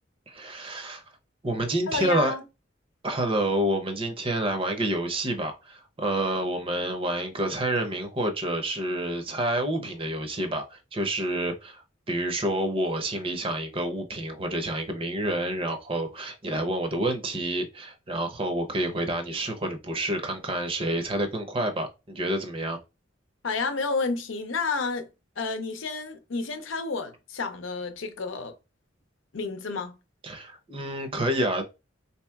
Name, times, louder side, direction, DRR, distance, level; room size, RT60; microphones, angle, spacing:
voice 1, 0.3-1.0 1.4-2.3 3.0-22.8 30.2-31.7, right 1 dB, 30° right, 0.7 m, -28 dB
voice 2, 1.9-2.4 23.4-25.1 25.4-28.5 29.3-30.0, left 4 dB, 90° left, 0.7 m, -30 dB
3.9 x 2.8 x 2.3 m
head